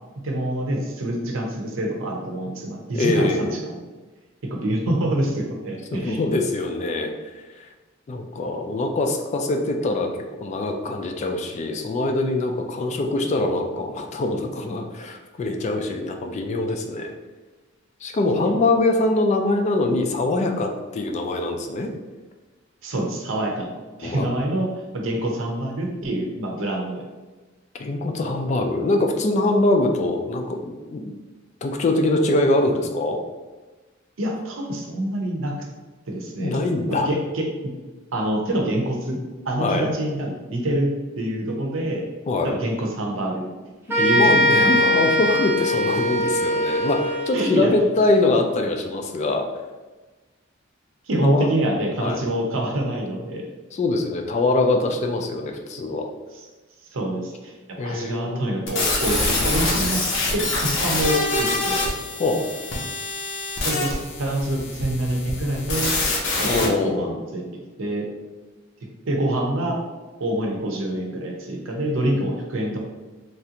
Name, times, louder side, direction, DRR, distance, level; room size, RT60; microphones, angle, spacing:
voice 1, 0.2-3.8 4.5-6.2 22.8-23.7 24.0-24.7 24.9-27.0 34.2-35.5 36.1-36.5 36.9-37.4 38.1-39.2 39.4-40.9 41.2-42.0 42.4-43.4 44.0-44.7 47.3-47.7 51.1-53.5 56.9-57.5 57.8-60.0 60.3-61.8 63.6-65.9 66.4-68.1 69.1-69.8 70.2-72.8, right 1 dB, 75° right, 0 dB, 0.6 m, -26 dB
voice 2, 2.9-3.6 5.9-7.1 7.6-7.7 8.1-17.1 18.0-21.9 24.0-24.3 27.8-31.0 31.6-33.2 36.4-37.1 39.6-39.9 42.3-42.6 44.2-49.5 51.2-51.5 52.0-52.2 53.7-56.1 57.8-58.6 62.2-62.5 66.4-67.2, left 2 dB, 35° left, 4 dB, 0.3 m, -23 dB
sound 1, 43.9-47.6, left 1 dB, 10° right, 0.6 m, -21 dB
sound 2, 58.7-66.7, left 2 dB, 65° left, 0.7 m, -25 dB
3.3 x 2.4 x 2.8 m, 1.2 s
head